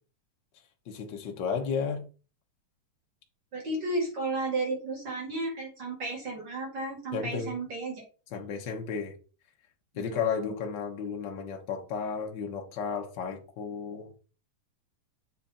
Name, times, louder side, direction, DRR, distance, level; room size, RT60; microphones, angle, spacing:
voice 1, 0.8-2.0 7.1-7.5 8.3-9.2 9.9-14.1, left 6 dB, 70° left, 1.1 m, -33 dB
voice 2, 3.5-8.0 9.9-10.2, right 2 dB, 35° right, 2.6 m, -33 dB
8.6 x 3.7 x 4.3 m
omnidirectional pair, 3.8 m